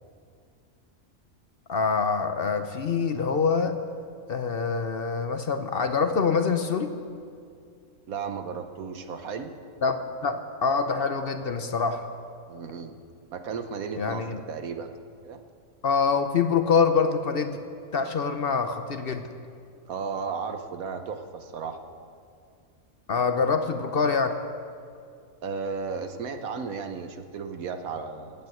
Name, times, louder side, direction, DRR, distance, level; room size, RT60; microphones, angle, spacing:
voice 1, 1.7-3.8 4.3-6.9 9.8-12.1 14.0-14.4 15.8-17.6 17.9-19.3 23.1-24.4, left 5 dB, 50° left, 8 dB, 0.8 m, -25 dB
voice 2, 8.1-9.5 12.5-13.0 13.3-14.9 15.2-15.4 19.8-21.8 25.4-28.5, right 5 dB, 90° right, 7 dB, 1.5 m, -34 dB
16.5 x 9.2 x 7.9 m, 2.3 s
omnidirectional pair, 1.5 m